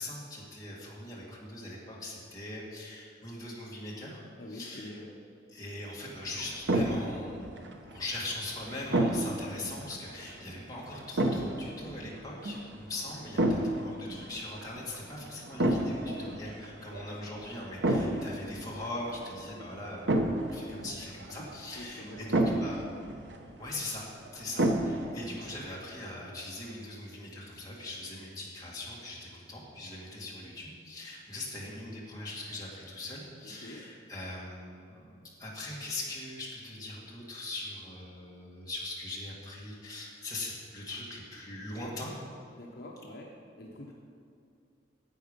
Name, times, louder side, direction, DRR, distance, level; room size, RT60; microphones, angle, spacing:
voice 1, 0.0-4.2 4.5-5.0 5.5-22.9 23.6-24.0 24.3-35.0 35.4-42.1, left 2 dB, 20° left, -5 dB, 2.2 m, -41 dB
voice 2, 4.4-5.1 16.0-16.3 17.9-18.2 21.7-22.6 33.4-33.8 42.5-43.3 43.6-43.9, left 1 dB, 55° left, -2 dB, 1.1 m, -45 dB
sound 1, 6.2-25.7, right 1 dB, 70° right, 1.0 m, -33 dB
10.5 x 8.1 x 5.4 m, 2.5 s
head